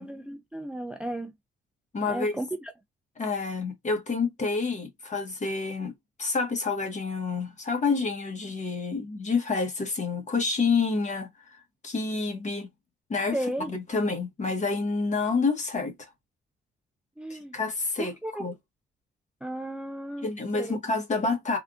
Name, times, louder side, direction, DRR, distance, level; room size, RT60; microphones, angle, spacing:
voice 1, 0.0-1.3 2.1-2.7 13.3-13.7 17.2-17.5 18.0-18.4 19.4-20.3 20.6-20.8, right 1 dB, 5° right, 0.4 m, -34 dB
voice 2, 1.9-2.4 3.2-5.9 6.2-12.7 13.1-15.9 17.3-18.5 20.2-21.6, left 4 dB, 35° left, 1.2 m, -28 dB
3.5 x 2.4 x 2.4 m
cardioid pair, 90°, 20 cm